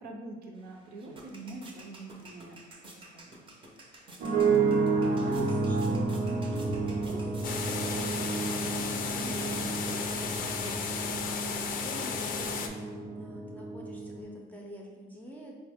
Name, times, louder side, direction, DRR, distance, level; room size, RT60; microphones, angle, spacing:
voice 1, 0.0-2.6 2.9-3.5, right 2 dB, 65° right, 1 dB, 0.7 m, -44 dB
sound 1, 0.6-11.3, right 2 dB, 30° right, 0.7 m, -52 dB
sound 2, 4.2-14.2, right 4 dB, 90° right, 0.9 m, -30 dB
voice 2, 5.0-11.3 11.7-15.6, equal, 10° left, -1 dB, 0.5 m, -45 dB
sound 3, 7.4-12.7, left 6 dB, 55° left, 0.4 m, -34 dB
4.2 x 2.1 x 3.5 m, 1.3 s
cardioid pair, 110°, 17 cm